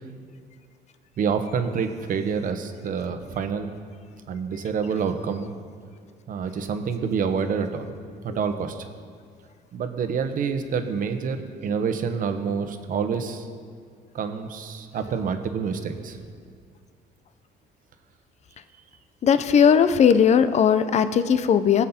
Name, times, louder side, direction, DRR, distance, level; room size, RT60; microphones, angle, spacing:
voice 1, 1.2-3.7 4.3-5.5 6.3-7.9 8.2-8.9 9.7-13.5 14.1-16.2, right 6 dB, 55° right, 7 dB, 1.2 m, -27 dB
voice 2, 19.2-21.8, left 7 dB, 40° left, 12 dB, 0.6 m, -18 dB
19.5 x 7.5 x 4.4 m, 2.2 s
cardioid pair, 110°, 17 cm